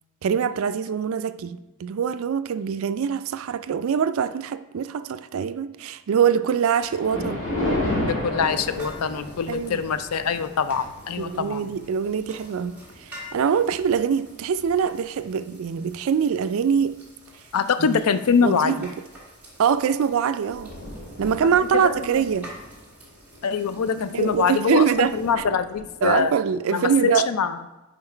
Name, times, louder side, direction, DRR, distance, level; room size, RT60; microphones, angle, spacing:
voice 1, 0.2-7.5 9.5-9.8 11.2-17.0 17.8-18.0 18.4-18.9 19.6-20.8 21.2-22.5 24.1-25.4 26.0-27.3, right 7 dB, 70° right, 0.3 m, -24 dB
Thunder, 6.8-15.3 15.8-16.0 16.7-16.8 17.2-17.3 19.5-19.7 20.0-20.1 20.3-26.3, left 1 dB, 70° left, 2.1 m, -34 dB
voice 2, 8.0-11.7 17.5-18.9 21.8-22.0 23.4-26.3 26.7-27.6, left 6 dB, 85° left, 0.4 m, -24 dB
sound 1, 8.5-25.3, equal, 5° right, 2.0 m, -48 dB
5.7 x 5.0 x 4.4 m
head